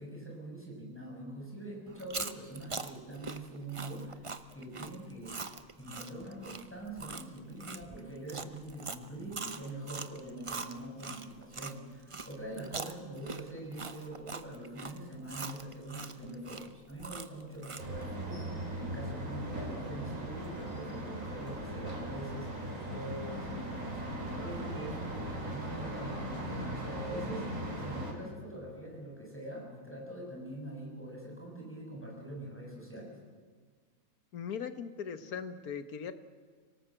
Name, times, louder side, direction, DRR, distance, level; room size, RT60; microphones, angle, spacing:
voice 1, 0.0-4.2 4.5-5.4 5.8-22.6 22.9-33.1, right 1 dB, 10° left, -2 dB, 6.8 m, -44 dB
Chewing mastication, 1.9-11.7 12.1-18.0, right 4 dB, 30° right, 0.6 m, -42 dB
sound 1, 17.8-28.1, right 1 dB, 60° right, 4.3 m, -39 dB
voice 2, 34.3-36.1, left 7 dB, 85° left, 11 dB, 1.6 m, -39 dB
25.0 x 18.0 x 7.7 m, 1.6 s
omnidirectional pair, 1.5 m